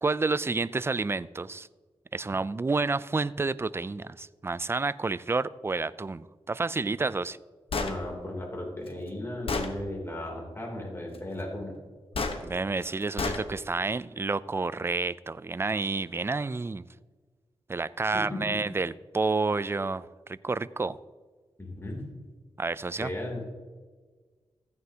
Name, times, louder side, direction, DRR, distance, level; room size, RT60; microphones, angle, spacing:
voice 1, 0.0-1.7 2.1-7.4 12.4-16.9 17.7-21.0 22.6-23.1, right 3 dB, 25° right, 17 dB, 0.3 m, -30 dB
Gunshot gunfire, 7.7-8.0 8.9-9.0 9.5-9.7 12.1-12.4 13.2-13.4, left 3 dB, 65° left, 1.1 m, -29 dB
voice 2, 7.8-11.7 18.1-18.5 21.6-22.0 23.0-23.4, left 1 dB, 25° left, -1 dB, 3.0 m, -36 dB
15.0 x 9.5 x 2.8 m, 1.4 s
cardioid pair, 75°, 10 cm